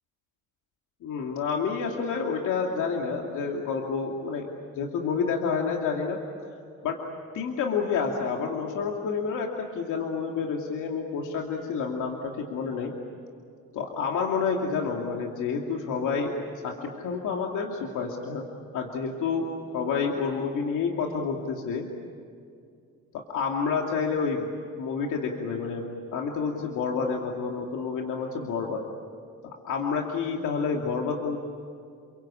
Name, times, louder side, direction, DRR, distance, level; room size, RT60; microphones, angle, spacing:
voice 1, 1.0-4.5 4.7-6.5 6.8-7.0 7.3-9.5 9.7-12.9 13.7-16.3 16.6-18.5 18.7-19.5 19.7-21.8 23.1-24.5 24.8-25.9 26.1-28.8 29.7-31.4, left 5 dB, 85° left, 1 dB, 2.7 m, -29 dB
29.5 x 23.0 x 8.7 m, 2.3 s
cardioid pair, 90°, 30 cm